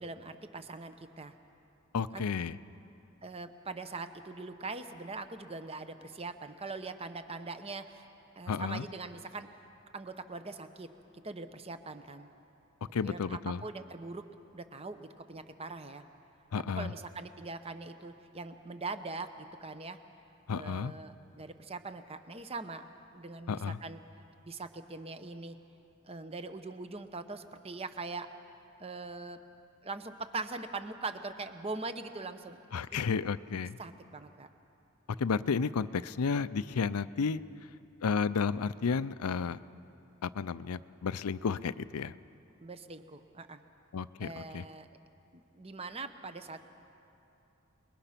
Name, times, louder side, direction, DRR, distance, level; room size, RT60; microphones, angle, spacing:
voice 1, 0.0-1.4 2.1-2.3 3.2-8.1 8.4-9.5 9.9-10.9 11.1-12.3 13.0-14.2 14.5-16.0 16.6-20.0 20.5-22.8 23.1-24.0 24.4-25.6 26.0-28.3 28.8-29.4 29.8-32.6 33.8-34.5 42.6-43.6 44.2-44.9 45.3-46.6, right 3 dB, 25° right, 9 dB, 0.9 m, -42 dB
voice 2, 1.9-2.5 8.5-8.9 12.9-13.6 16.5-16.9 20.5-20.9 23.5-23.8 32.7-33.8 35.2-37.4 38.0-39.6 40.2-42.1 43.9-44.3 44.5-44.6, left 5 dB, 90° left, 16 dB, 0.5 m, -32 dB
28.0 x 21.0 x 5.9 m, 2.8 s
head